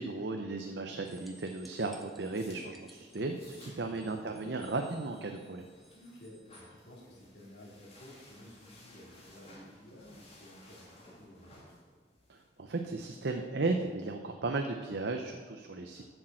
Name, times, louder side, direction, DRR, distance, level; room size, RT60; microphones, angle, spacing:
voice 1, 0.0-5.6 12.3-16.0, right 3 dB, 70° right, 4 dB, 0.7 m, -35 dB
sound 1, 1.0-6.7 9.6-9.7, right 1 dB, ahead, 1.1 m, -57 dB
sound 2, 1.9-13.3, left 1 dB, 35° left, 2.6 m, -59 dB
voice 2, 5.9-11.8 15.9-16.0, equal, 70° left, -5 dB, 3.2 m, -53 dB
8.6 x 6.6 x 7.6 m, 1.5 s
head